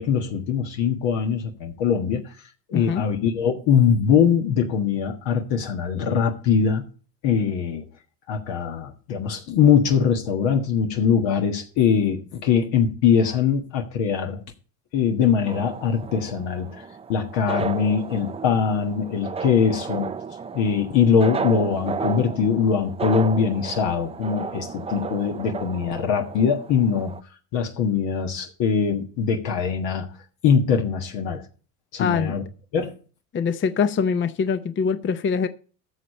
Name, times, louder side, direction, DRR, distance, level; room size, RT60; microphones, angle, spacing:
voice 1, 0.0-2.3 2.7-6.9 7.2-7.8 8.3-14.4 14.9-16.7 17.1-20.1 20.5-27.1 27.5-30.1 30.4-31.4 31.9-32.4 32.7-32.9, left 7 dB, 65° left, 1.6 m, -22 dB
voice 2, 2.7-3.0 32.0-32.3 33.3-35.5, left 6 dB, 25° left, 0.7 m, -23 dB
sound 1, 15.4-27.2, right 5 dB, 15° right, 0.4 m, -33 dB
13.0 x 6.8 x 4.3 m
supercardioid pair, 90°, 47 cm